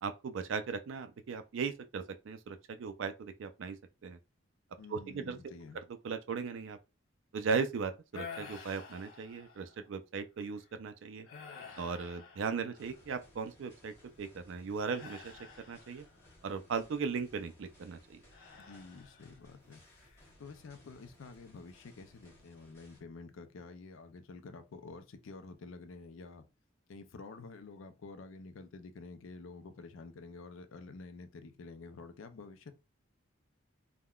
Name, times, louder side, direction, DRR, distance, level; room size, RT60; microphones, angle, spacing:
voice 1, 0.0-3.8 4.0-4.2 4.9-5.4 6.0-6.8 7.3-11.3 11.8-15.3 15.7-16.0 16.4-18.2, right 5 dB, 65° right, 0.3 m, -37 dB
voice 2, 4.8-5.8 18.6-19.8 20.4-26.4 26.9-32.7, left 3 dB, 70° left, 0.4 m, -49 dB
sound 1, 8.1-9.8 10.4-10.7 11.2-13.1 14.9-16.3 18.3-19.4 19.8-20.3, left 5 dB, 85° left, 0.8 m, -50 dB
sound 2, 12.7-23.0, left 1 dB, 15° left, 1.2 m, -62 dB
3.5 x 2.1 x 2.3 m
head